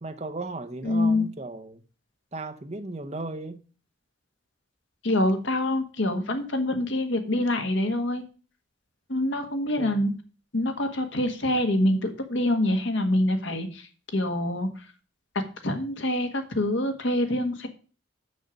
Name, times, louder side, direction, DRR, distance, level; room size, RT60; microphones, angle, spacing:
voice 1, 0.0-1.8 2.3-3.6 9.8-10.0, right 2 dB, 35° right, 0.8 m, -36 dB
voice 2, 0.8-1.2 5.0-8.2 9.1-10.1 10.5-13.9 14.1-14.7 15.6-17.7, left 1 dB, 70° left, 1.6 m, -25 dB
6.6 x 6.4 x 6.4 m
head